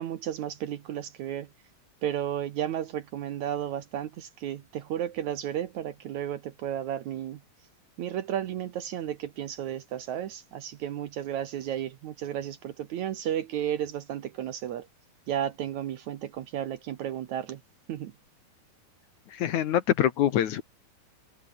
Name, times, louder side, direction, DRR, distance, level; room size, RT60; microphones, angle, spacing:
voice 1, 0.0-1.5 2.0-7.4 8.0-14.9 15.3-17.6 17.9-18.1, right 10 dB, 65° right, 2.1 m, -33 dB
voice 2, 19.3-20.6, left 11 dB, 65° left, 2.3 m, -25 dB
omnidirectional pair, 4.2 m